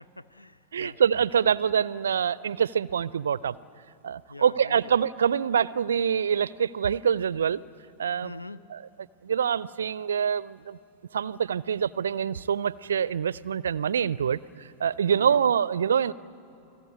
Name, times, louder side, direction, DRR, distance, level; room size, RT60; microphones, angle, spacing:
voice 1, 0.0-1.0 4.3-4.9 8.2-8.6 15.0-15.5, left 2 dB, 85° left, 14 dB, 0.6 m, -43 dB
voice 2, 0.7-3.6 4.0-7.6 8.0-8.3 8.7-8.8 9.2-10.8 11.1-16.1, right 7 dB, 70° right, 20 dB, 0.5 m, -25 dB
30.0 x 19.5 x 8.3 m, 3.0 s
figure-of-eight pair, 90°, 0 cm